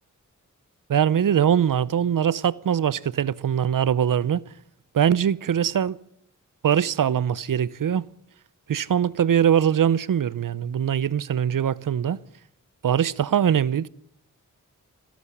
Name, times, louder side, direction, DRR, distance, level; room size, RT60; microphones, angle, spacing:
voice 1, 0.9-4.4 4.9-6.0 6.6-8.0 8.7-12.2 12.8-13.9, right 9 dB, 80° right, 0.8 m, -22 dB
27.0 x 11.5 x 9.8 m
wide cardioid pair, 95°, 32 cm